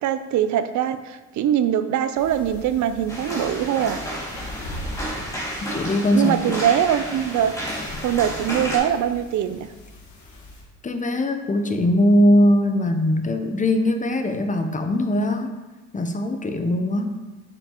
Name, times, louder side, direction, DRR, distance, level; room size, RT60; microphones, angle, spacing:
voice 1, 0.0-4.0 6.1-7.6 8.0-9.7, right 10 dB, 70° right, 11 dB, 0.5 m, -22 dB
sound 1, 2.2-10.6, left 1 dB, 70° left, 1.5 m, -40 dB
sound 2, 3.1-8.8, equal, 10° left, 2.1 m, -31 dB
voice 2, 5.6-6.6 10.8-15.6 15.9-17.2, left 1 dB, 25° left, 7 dB, 0.6 m, -21 dB
6.7 x 5.8 x 2.9 m, 1.2 s
cardioid pair, 90°, 30 cm